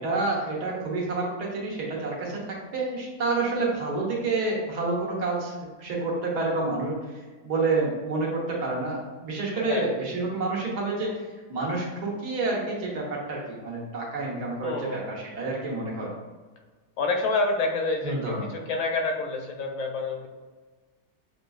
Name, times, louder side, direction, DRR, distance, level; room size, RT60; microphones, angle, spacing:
voice 1, 0.0-11.1 11.5-16.1 18.0-18.5, right 3 dB, 90° right, -3 dB, 1.6 m, -29 dB
voice 2, 9.6-9.9 14.6-15.2 17.0-20.3, left 3 dB, 70° left, 3 dB, 0.9 m, -28 dB
6.4 x 2.5 x 2.3 m, 1.4 s
omnidirectional pair, 1.6 m